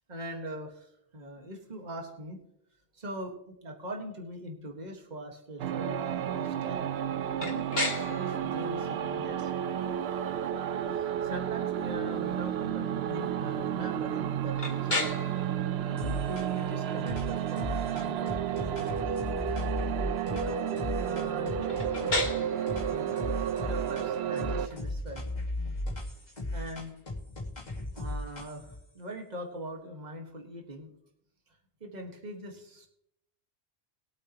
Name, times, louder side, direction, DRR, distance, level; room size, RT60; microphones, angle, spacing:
voice 1, 0.1-2.4 2.9-6.9 7.4-9.5 10.9-14.9 15.8-18.9 19.5-19.6 20.3-23.2 23.6-25.2 26.5-26.9 27.9-30.9 31.8-32.9, equal, 40° right, 2 dB, 1.8 m, -42 dB
sound 1, 5.6-24.7, right 9 dB, 70° right, 0.8 m, -32 dB
sound 2, 7.4-27.1, left 2 dB, 60° left, 2.5 m, -40 dB
sound 3, 16.0-16.7 17.1-22.3 22.7-24.1 24.4-28.8, left 1 dB, 40° left, 2.5 m, -36 dB
21.5 x 8.4 x 3.0 m, 0.76 s
omnidirectional pair, 1.1 m